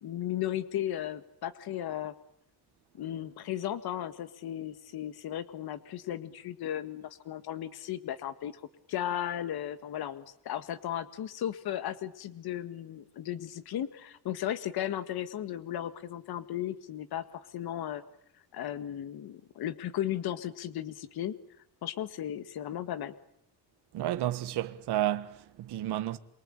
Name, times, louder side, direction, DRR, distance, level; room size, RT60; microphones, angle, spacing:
voice 1, 0.0-2.1 2.9-8.6 8.9-18.0 18.5-21.3 21.8-23.1, left 11 dB, 65° left, 1.8 m, -35 dB
voice 2, 23.9-26.2, right 13 dB, 70° right, 1.5 m, -31 dB
27.5 x 24.0 x 9.0 m
cardioid pair, 170°, 41 cm